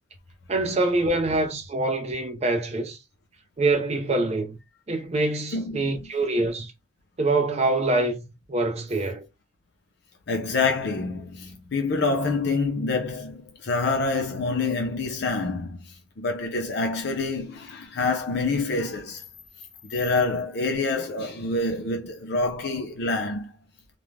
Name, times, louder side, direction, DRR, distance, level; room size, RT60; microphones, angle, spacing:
voice 1, 0.5-3.0 3.6-4.6 4.9-6.7 7.2-8.2 8.5-9.3, right 2 dB, 35° right, 0.5 m, -25 dB
voice 2, 5.5-6.1 10.3-15.8 16.2-19.2 19.8-23.5, left 3 dB, 60° left, 0.6 m, -27 dB
2.5 x 2.1 x 3.2 m
head